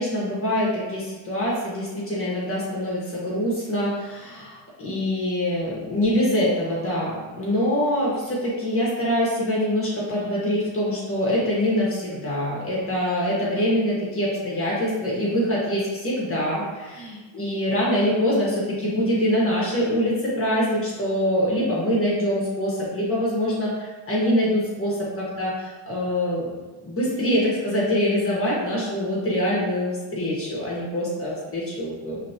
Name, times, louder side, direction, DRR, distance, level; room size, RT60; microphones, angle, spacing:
voice 1, 0.0-26.5 26.8-32.2, equal, 25° left, -6 dB, 1.4 m, -24 dB
5.0 x 3.4 x 2.9 m, 1.3 s
supercardioid pair, 95°, 49 cm